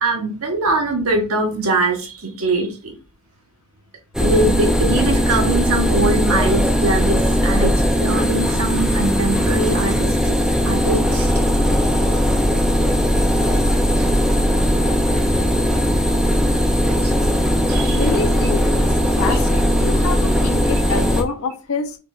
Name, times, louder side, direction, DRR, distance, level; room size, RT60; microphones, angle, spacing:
voice 1, 0.0-2.9 4.2-7.7 8.0-10.3 10.6-11.3 17.0-17.1 17.7-18.0, right 2 dB, 70° right, 1.0 m, -22 dB
sound 1, 4.1-21.2, equal, 5° right, 0.4 m, -18 dB
voice 2, 17.8-22.0, left 4 dB, 65° left, 0.6 m, -27 dB
4.9 x 3.1 x 2.4 m
head